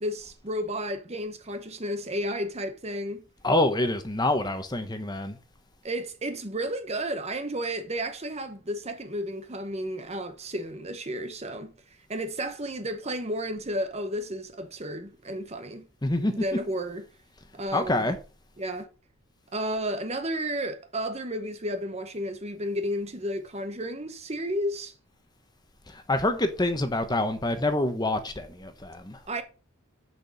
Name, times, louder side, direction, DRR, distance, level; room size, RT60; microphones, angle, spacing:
voice 1, 0.0-3.2 5.8-11.7 12.1-15.9 16.3-17.0 17.5-18.1 18.6-18.9 19.5-24.9 29.3-29.4, equal, 30° right, 1.0 m, -32 dB
voice 2, 3.4-5.4 16.0-16.3 17.7-18.2 25.9-29.2, left 1 dB, 20° left, 1.0 m, -26 dB
6.8 x 6.1 x 6.9 m
head